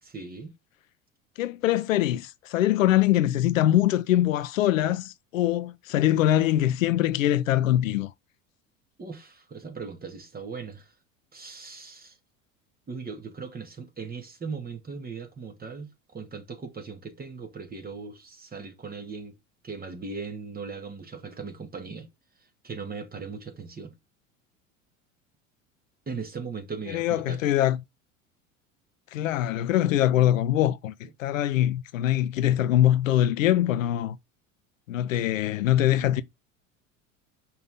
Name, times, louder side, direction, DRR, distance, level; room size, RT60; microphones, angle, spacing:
voice 1, 0.1-0.6 9.0-10.9 11.3-12.2 12.9-19.3 19.6-22.1 22.6-23.9 26.1-27.4 31.0-31.1, right 4 dB, 20° right, 2.2 m, -38 dB
voice 2, 1.4-8.1 26.9-27.8 29.1-30.9 31.2-34.2 34.9-36.2, left 13 dB, 75° left, 0.8 m, -23 dB
5.8 x 5.6 x 3.7 m
hypercardioid pair, 75°, 39 cm